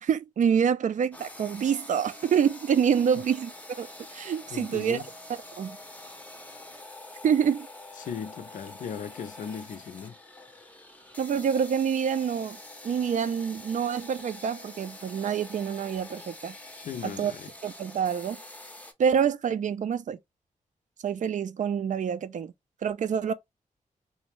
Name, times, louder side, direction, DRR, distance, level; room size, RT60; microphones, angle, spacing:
voice 1, 0.0-3.5 3.8-5.0 5.6-5.8 7.2-7.7 11.2-12.6 12.8-16.5 17.0-17.3 17.6-18.4 19.0-20.2 21.0-22.5 22.8-23.3, right 7 dB, 60° right, 0.4 m, -26 dB
sound 1, 1.1-18.9, left 2 dB, 10° left, 0.6 m, -46 dB
voice 2, 4.5-5.1 8.0-10.2 16.8-17.5, left 7 dB, 65° left, 0.4 m, -38 dB
2.6 x 2.1 x 2.9 m
cardioid pair, 65°, 14 cm